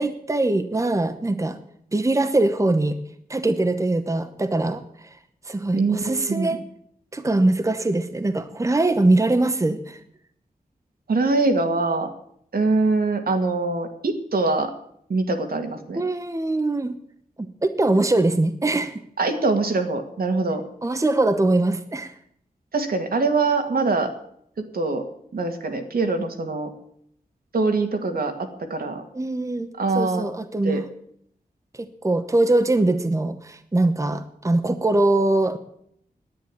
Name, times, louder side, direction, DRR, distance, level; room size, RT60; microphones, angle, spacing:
voice 1, 0.0-1.6 1.9-3.0 3.3-5.1 5.5-6.6 7.1-10.0 16.0-16.9 17.6-19.0 20.8-22.1 29.1-29.7 29.9-30.9 31.7-35.6, right 2 dB, 20° right, 9 dB, 0.9 m, -22 dB
voice 2, 5.7-6.6 11.1-12.1 12.5-14.7 15.1-16.0 19.2-20.6 22.7-24.1 24.6-25.0 25.3-26.7 27.5-28.3 28.7-29.0 29.8-30.3 30.6-30.8, right 3 dB, 75° right, 5 dB, 2.1 m, -23 dB
10.5 x 9.0 x 9.8 m, 0.68 s
wide cardioid pair, 110°, 15 cm